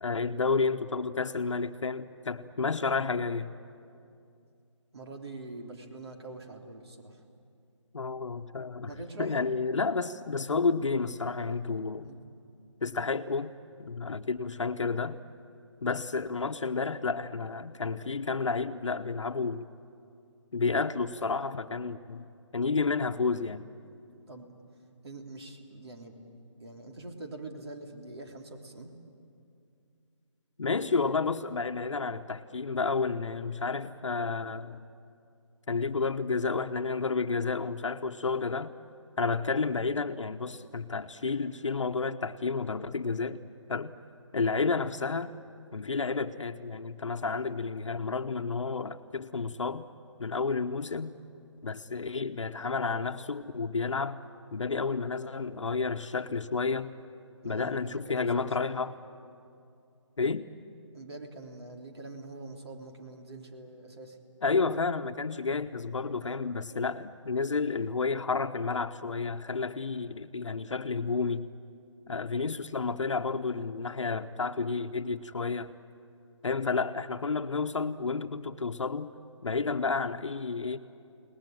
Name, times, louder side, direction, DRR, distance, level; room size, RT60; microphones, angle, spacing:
voice 1, 0.0-3.5 7.9-8.9 9.2-12.1 12.8-13.5 13.8-15.2 15.8-19.7 20.5-22.3 22.5-23.7 30.6-34.8 35.7-38.7 39.2-43.4 43.7-43.9 44.3-45.3 45.7-49.9 50.2-51.2 51.6-54.2 54.5-56.9 57.4-58.9 60.2-60.5 64.4-71.5 72.1-75.8 76.4-79.1 79.4-80.8, left 4 dB, 70° left, 7 dB, 1.1 m, -31 dB
voice 2, 4.9-7.2 8.9-9.4 12.0-12.2 24.3-24.5 25.0-26.2 26.6-28.9 57.4-58.8 60.9-64.2 66.2-66.4, right 2 dB, 55° right, 2 dB, 3.6 m, -44 dB
30.0 x 19.5 x 9.3 m, 2.5 s
figure-of-eight pair, 165°, 16 cm